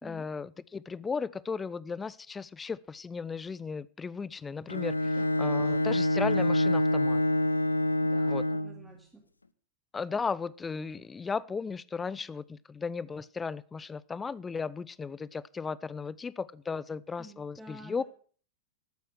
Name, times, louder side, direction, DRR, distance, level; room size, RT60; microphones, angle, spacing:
voice 1, 0.0-7.2 8.3-8.5 9.9-18.0, left 5 dB, 15° left, 21 dB, 0.5 m, -36 dB
Bowed string instrument, 4.7-8.8, left 1 dB, 80° left, 0.7 m, -26 dB
voice 2, 5.1-5.9 8.0-9.2 17.2-18.0, right 1 dB, 10° right, -1 dB, 2.5 m, -50 dB
13.5 x 9.2 x 6.2 m, 0.44 s
figure-of-eight pair, 90°, 0 cm